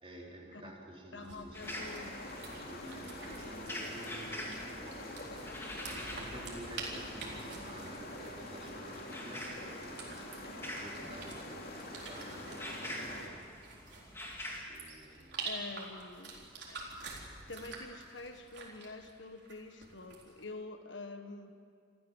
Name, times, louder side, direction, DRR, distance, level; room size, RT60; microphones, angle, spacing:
voice 1, 0.0-13.4 14.7-15.5, right 1 dB, 30° right, -2 dB, 4.0 m, -51 dB
voice 2, 1.1-2.2 15.4-16.9 17.5-21.5, left 3 dB, 70° left, 6 dB, 1.5 m, -46 dB
sound 1, 1.2-20.4, right 4 dB, 60° right, 4.1 m, -48 dB
sound 2, 1.5-14.6, left 1 dB, 10° left, 2.6 m, -46 dB
sound 3, 1.6-13.3, left 1 dB, 50° left, 3.0 m, -46 dB
27.5 x 14.5 x 7.3 m, 2.2 s
head